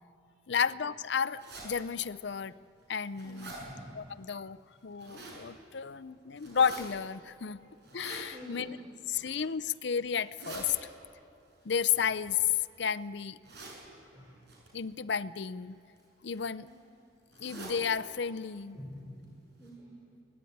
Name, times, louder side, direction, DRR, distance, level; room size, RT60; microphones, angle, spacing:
voice 1, 0.5-2.5 2.9-3.5 3.9-4.6 4.8-7.6 7.9-8.8 9.1-10.8 11.6-12.5 12.8-13.4 14.7-15.8 16.2-16.7 17.4-18.8, left 7 dB, 60° left, 16 dB, 0.6 m, -32 dB
sound 1, 1.4-1.7 2.3-2.4 2.8-3.6 4.7-5.4 6.4-6.8 7.8-8.2 9.0-9.4 10.1-10.6 11.7-12.7 13.4-13.8 14.5-14.7 15.7-16.0 16.3-16.4 16.7-16.8 17.3-17.8 18.2-18.3 18.6-18.7 19.2-19.3 19.6-19.7, right 3 dB, 60° right, 7.6 m, -47 dB
voice 2, 3.2-4.0 7.6-7.7 8.3-8.9 14.1-14.4 16.6-16.8 18.7-20.0, equal, 15° right, -3 dB, 3.7 m, -48 dB
23.5 x 19.0 x 9.4 m, 2.5 s
head